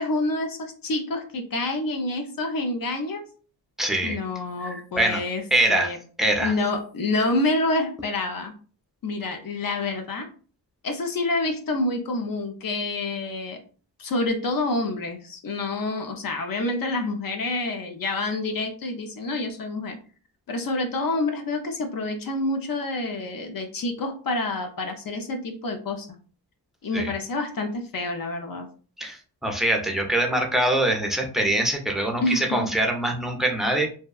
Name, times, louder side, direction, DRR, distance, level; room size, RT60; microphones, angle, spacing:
voice 1, 0.0-3.2 4.0-5.4 5.7-6.0 6.4-8.5 9.0-10.3 10.8-13.6 14.0-20.0 20.5-26.1 26.8-28.7 32.2-32.7, left 2 dB, 50° left, 5 dB, 0.6 m, -27 dB
voice 2, 3.8-4.2 4.6-5.2 5.5-5.9 6.2-6.5 26.9-27.1 29.0-33.9, right 1 dB, ahead, 1 dB, 0.5 m, -24 dB
2.7 x 2.1 x 2.3 m, 0.39 s
cardioid pair, 90°, 44 cm